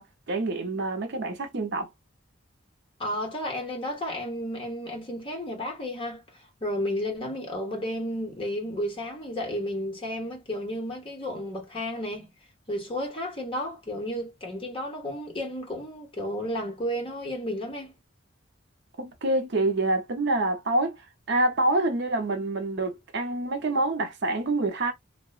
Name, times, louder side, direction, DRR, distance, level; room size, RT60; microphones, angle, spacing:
voice 1, 0.0-1.9 19.0-21.0 21.3-24.9, right 2 dB, 60° right, 0.6 m, -26 dB
voice 2, 3.0-12.3 12.7-17.9, equal, 25° left, 0.9 m, -32 dB
2.8 x 2.1 x 2.3 m
head